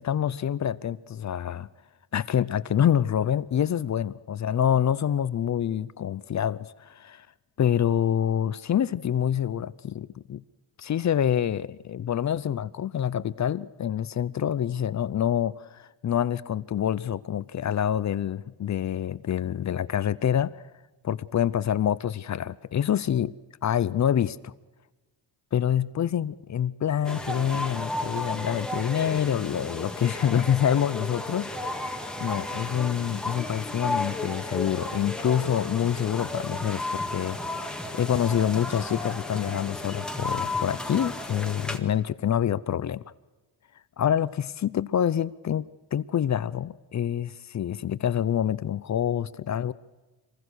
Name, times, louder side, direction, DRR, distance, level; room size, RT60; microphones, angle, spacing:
voice 1, 0.0-1.7 2.1-7.3 7.6-10.4 10.8-20.6 21.0-23.3 23.6-24.5 25.5-31.5 32.2-37.4 37.7-43.0 44.0-49.7, left 9 dB, 35° left, 0.7 m, -26 dB
sound 1, 27.0-41.8, left 2 dB, ahead, 1.8 m, -33 dB
26.0 x 20.5 x 6.4 m
cardioid pair, 125°, 47 cm